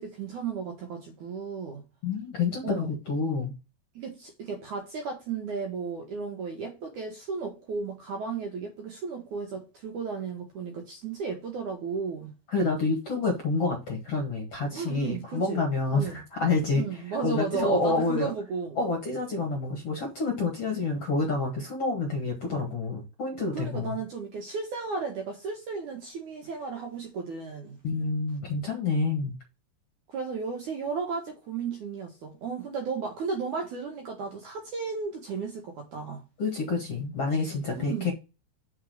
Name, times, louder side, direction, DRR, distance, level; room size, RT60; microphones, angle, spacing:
voice 1, 0.0-1.8 2.6-2.9 4.0-12.3 14.7-15.7 15.9-16.2 16.7-18.8 23.5-27.8 30.1-36.2 37.8-38.1, right 5 dB, 65° right, 2.1 m, -34 dB
voice 2, 2.0-3.5 12.5-18.3 18.8-24.0 27.8-29.3 36.4-38.1, left 3 dB, 50° left, 1.8 m, -28 dB
6.4 x 4.3 x 6.3 m
omnidirectional pair, 4.9 m